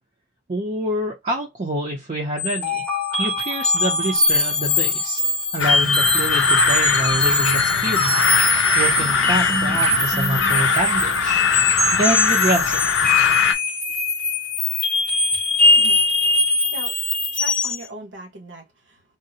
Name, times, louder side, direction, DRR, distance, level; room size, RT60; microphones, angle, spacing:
voice 1, 0.5-2.8 3.2-5.2 5.5-8.1 8.5-13.1, right 1 dB, 35° right, 0.5 m, -26 dB
sound 1, 2.4-17.9, left 2 dB, 5° left, 0.7 m, -21 dB
sound 2, 5.6-13.5, left 6 dB, 75° left, 0.4 m, -21 dB
voice 2, 17.3-19.0, right 2 dB, 80° right, 1.2 m, -38 dB
3.8 x 2.0 x 2.7 m
head